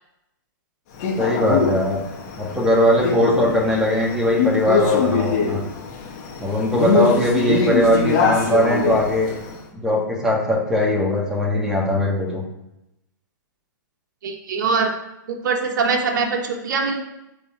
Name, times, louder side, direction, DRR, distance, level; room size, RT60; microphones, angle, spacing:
Male speech man speaking, 1.0-9.5, left 5 dB, 45° left, 1.3 m, -23 dB
voice 1, 1.2-2.1 2.4-5.6 6.4-9.3 9.7-12.4, left 1 dB, 5° right, -4 dB, 1.6 m, -20 dB
voice 2, 14.2-14.9 15.3-17.0, right 4 dB, 65° right, 2 dB, 1.3 m, -22 dB
5.3 x 4.5 x 4.2 m, 0.88 s
hypercardioid pair, 140°, 11 cm